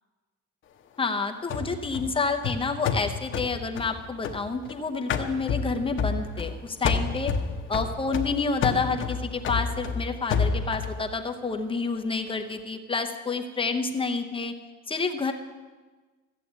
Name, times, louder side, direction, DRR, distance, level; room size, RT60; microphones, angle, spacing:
voice 1, 1.0-7.3 7.7-14.5 14.9-15.3, left 4 dB, 15° left, 5 dB, 0.8 m, -29 dB
sound 1, 1.5-4.7 5.1-6.6 6.8-11.0, left 5 dB, 40° left, 1.0 m, -29 dB
14.0 x 8.4 x 8.1 m, 1.3 s
cardioid pair, 165°, 31 cm